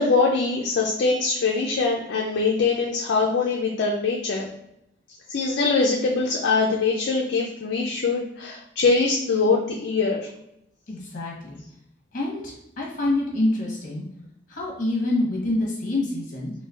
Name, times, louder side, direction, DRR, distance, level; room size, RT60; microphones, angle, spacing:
voice 1, 0.0-4.5 5.3-10.3, left 4 dB, 60° left, -1 dB, 0.4 m, -23 dB
voice 2, 10.9-11.6 12.1-14.0 14.5-16.5, left 2 dB, 45° left, -2 dB, 1.0 m, -26 dB
3.9 x 2.1 x 2.4 m, 0.80 s
head